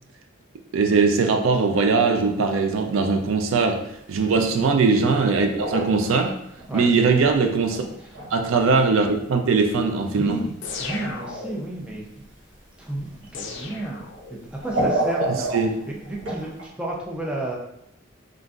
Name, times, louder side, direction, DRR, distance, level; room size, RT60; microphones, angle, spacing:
voice 1, 0.7-3.8 4.1-6.3 6.7-7.8 8.3-10.4 15.5-15.7, right 4 dB, 85° right, 4 dB, 0.4 m, -20 dB
sound 1, 2.3-2.7 3.0-3.1 4.1-4.2 4.6-4.9 5.2-7.4 7.7-8.4 8.7-8.8 9.7-9.8 10.8-11.3 13.2-13.5 13.8-13.9 14.5-16.7, right 1 dB, 65° right, 0.8 m, -29 dB
voice 2, 10.1-10.5 10.8-12.3 12.8-14.0 14.3-17.6, right 1 dB, 5° right, -3 dB, 0.4 m, -32 dB
sound 2, 10.6-11.9 13.3-14.6, left 4 dB, 60° left, 0.4 m, -35 dB
3.7 x 2.5 x 2.3 m, 0.75 s
head